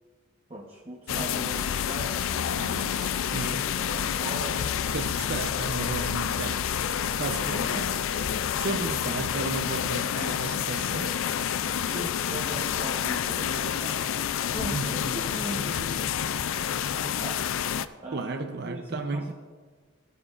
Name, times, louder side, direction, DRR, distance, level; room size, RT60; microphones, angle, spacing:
voice 1, 0.5-4.8 7.4-8.0 10.2-10.4 10.9-11.1 11.8-14.0 14.5-16.1 17.0-17.5 18.0-19.3, right 1 dB, 25° right, 1.0 m, -39 dB
sound 1, 1.1-17.9, left 8 dB, 65° left, 0.4 m, -29 dB
voice 2, 2.6-3.6 4.9-6.7 7.2-8.0 8.6-11.1 14.7-15.0 18.1-19.3, right 3 dB, 50° right, 0.6 m, -34 dB
17.5 x 9.0 x 2.5 m
head